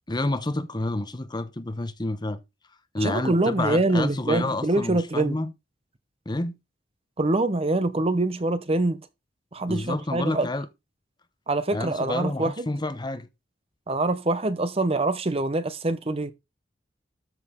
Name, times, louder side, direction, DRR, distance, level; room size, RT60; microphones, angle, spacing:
voice 1, 0.1-2.4 2.9-5.5 6.3-6.6 9.7-10.7 11.7-13.3, left 2 dB, 25° left, 0.9 m, -29 dB
voice 2, 3.0-5.4 7.2-9.0 9.5-10.5 11.5-12.7 13.9-16.3, right 2 dB, 30° right, 0.8 m, -24 dB
12.5 x 6.4 x 3.7 m
head